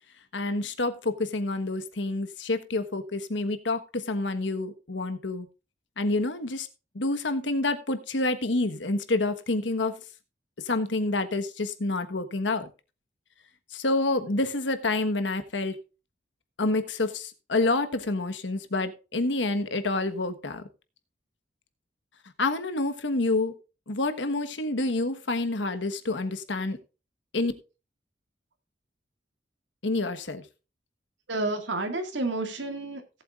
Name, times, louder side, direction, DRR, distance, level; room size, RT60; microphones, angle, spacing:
voice 1, 0.3-5.5 6.0-6.7 6.9-10.0 10.6-12.7 13.7-15.8 16.6-20.6 22.4-23.5 23.9-26.8 27.3-27.5 29.8-30.4, left 2 dB, 85° left, 9 dB, 1.3 m, -28 dB
voice 2, 31.3-33.2, right 2 dB, 90° right, 5 dB, 2.0 m, -30 dB
17.5 x 7.9 x 2.5 m, 0.31 s
head